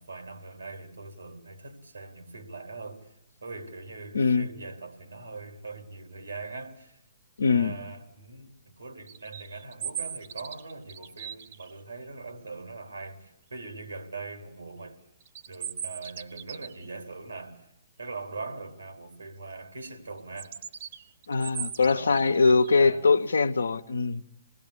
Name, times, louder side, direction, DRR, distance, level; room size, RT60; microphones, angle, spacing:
voice 1, 0.0-3.1 3.4-7.0 7.5-15.0 15.5-17.7 18.0-20.6 21.8-22.2 22.8-23.1, right 3 dB, 85° right, 3.6 m, -41 dB
voice 2, 4.1-4.5 7.4-7.8 21.3-24.3, left 4 dB, 80° left, 1.1 m, -22 dB
sound 1, 9.1-11.8 15.2-16.9 20.4-22.8, right 8 dB, 50° right, 1.3 m, -38 dB
26.5 x 19.5 x 8.4 m
figure-of-eight pair, 130°, 0 cm